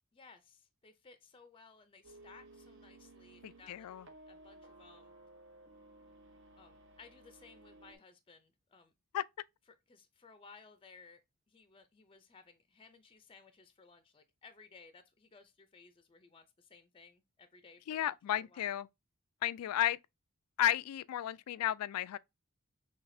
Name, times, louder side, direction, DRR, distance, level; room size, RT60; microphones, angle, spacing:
voice 1, 0.1-3.9 4.3-5.1 6.6-8.9 9.9-11.2 11.5-18.8, left 4 dB, 25° left, 0.5 m, -59 dB
sound 1, 2.0-7.9, right 2 dB, 60° right, 1.0 m, -58 dB
voice 2, 3.4-4.0 9.1-9.2 17.9-18.9 19.4-20.0 20.6-22.2, left 12 dB, 85° left, 0.3 m, -33 dB
5.8 x 3.4 x 2.7 m
head